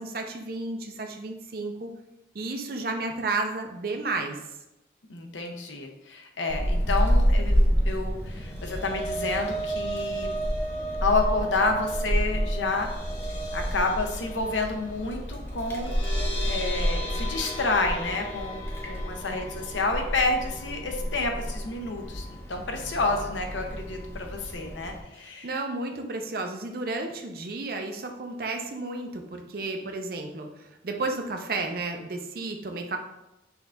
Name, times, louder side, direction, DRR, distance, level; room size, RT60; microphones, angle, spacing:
voice 1, 0.0-1.9 2.3-4.4 25.4-33.0, right 3 dB, 50° right, 3 dB, 0.5 m, -32 dB
voice 2, 5.1-10.3 11.0-12.9 13.5-15.9 16.4-25.5, left 3 dB, 85° left, 3 dB, 0.8 m, -29 dB
Wind, 6.5-25.0, equal, 15° left, 0.6 m, -29 dB
sound 1, 8.3-22.5 22.9-23.1 23.4-23.5, right 1 dB, 35° left, 1.3 m, -36 dB
6.1 x 2.5 x 3.4 m, 0.93 s
head